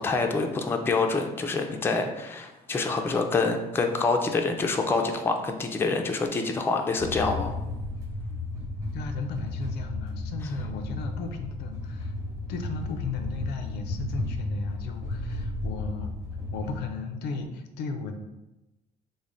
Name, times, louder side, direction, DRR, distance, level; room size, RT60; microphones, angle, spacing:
voice 1, 0.0-7.5, left 3 dB, 15° left, 4 dB, 0.3 m, -26 dB
sound 1, 7.0-16.8, left 2 dB, 20° right, 0.8 m, -34 dB
voice 2, 8.9-12.1 12.5-16.1 16.5-18.2, left 4 dB, 80° left, 6 dB, 0.4 m, -35 dB
3.3 x 2.1 x 3.8 m, 0.98 s
cardioid pair, 110°, 17 cm